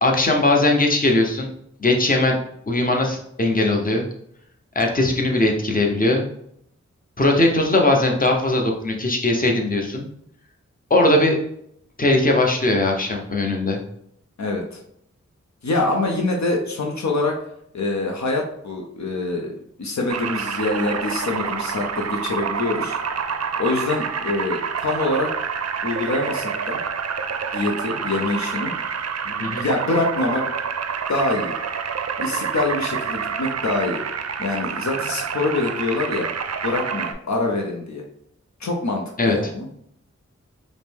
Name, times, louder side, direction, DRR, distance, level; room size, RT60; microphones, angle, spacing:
voice 1, 0.0-1.5 1.8-2.4 2.7-4.0 4.7-6.2 7.2-10.1 10.9-11.4 12.0-13.8 29.4-29.6 39.2-39.4, left 2 dB, 30° left, 1 dB, 0.8 m, -19 dB
voice 2, 14.4-14.8 15.6-17.3 17.7-23.0 23.6-25.3 25.8-26.8 27.5-28.7 29.2-30.5 31.1-31.6 32.2-34.0 34.4-36.3 36.6-38.0 38.6-39.7, left 2 dB, 70° left, 1 dB, 0.7 m, -25 dB
sound 1, 20.1-37.1, right 6 dB, 60° right, 0.4 m, -28 dB
5.0 x 2.1 x 3.4 m, 0.72 s
cardioid pair, 40°, 29 cm